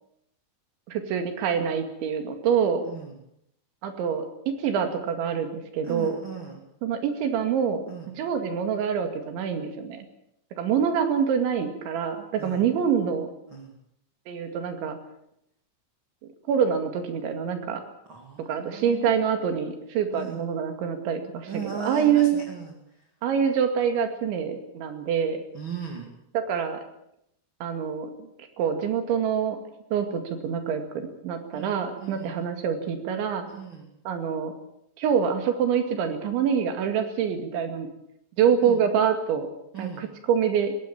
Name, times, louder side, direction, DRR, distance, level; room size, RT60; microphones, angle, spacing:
voice 1, 0.9-2.8 3.8-6.2 6.8-7.8 8.1-10.1 10.6-13.3 14.3-15.0 16.5-17.8 18.5-22.4 23.2-25.4 26.3-26.8 27.6-28.3 28.6-29.6 29.9-33.4 34.1-34.5 35.0-37.9 38.4-39.5 39.8-40.8, right 7 dB, 75° right, 7 dB, 4.4 m, -26 dB
voice 2, 2.8-3.2 5.8-6.6 7.9-8.1 12.4-12.6 13.5-13.7 18.1-19.3 20.1-20.4 21.5-22.7 25.5-26.1 31.5-32.4 33.5-33.9 38.6-38.8 39.7-40.1, right 6 dB, 35° right, 2 dB, 2.2 m, -37 dB
19.5 x 16.5 x 8.8 m, 0.77 s
omnidirectional pair, 5.5 m